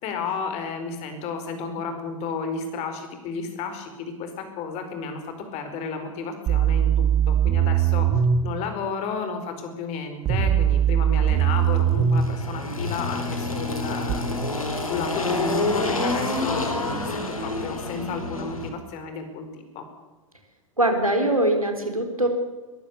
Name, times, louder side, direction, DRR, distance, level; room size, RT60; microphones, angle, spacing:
voice 1, 0.0-5.2 5.5-19.9, left 5 dB, 40° left, 7 dB, 4.7 m, -33 dB
sound 1, 6.5-8.4 10.3-12.3 14.1-14.2, right 9 dB, 30° right, 1.9 m, -20 dB
Engine, 11.3-18.7, left 2 dB, 80° left, 3.9 m, -28 dB
voice 2, 20.8-22.3, right 1 dB, 90° right, 4 dB, 4.0 m, -22 dB
22.0 x 15.0 x 8.3 m, 1.2 s
figure-of-eight pair, 95°, 18 cm